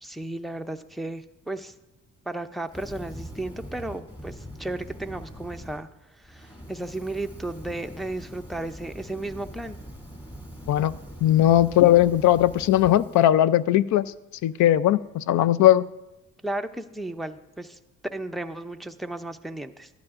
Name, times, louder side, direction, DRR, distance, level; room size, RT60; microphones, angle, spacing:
voice 1, 0.0-1.7 2.3-5.9 6.2-9.8 16.4-17.8 18.1-19.9, right 2 dB, ahead, 6 dB, 0.5 m, -34 dB
Fire, 2.6-5.8 6.2-13.3, equal, 15° left, 2.6 m, -42 dB
voice 2, 11.2-14.1 14.4-15.8, left 13 dB, 70° left, 18 dB, 0.4 m, -19 dB
14.5 x 11.5 x 2.5 m, 1.0 s
cardioid pair, 90°, 30 cm